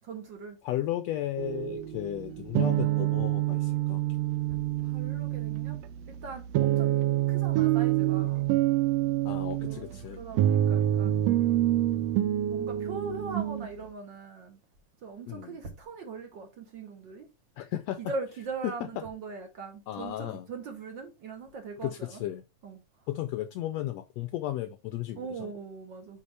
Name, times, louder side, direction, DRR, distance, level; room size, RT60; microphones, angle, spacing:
voice 1, 0.0-0.6 4.8-5.8 6.1-7.0 7.3-8.4 9.6-9.9 10.2-11.2 12.5-14.6 15.0-17.3 18.0-22.2 22.6-22.8 25.2-26.2, right 4 dB, 65° right, 1.2 m, -40 dB
voice 2, 0.6-4.0 9.2-10.2 15.3-15.6 17.6-18.1 18.6-19.0 19.9-20.5 21.8-22.4 23.1-25.5, left 13 dB, 80° left, 1.5 m, -34 dB
sound 1, 1.4-13.7, right 13 dB, 80° right, 1.5 m, -27 dB
8.6 x 4.2 x 3.3 m
omnidirectional pair, 3.4 m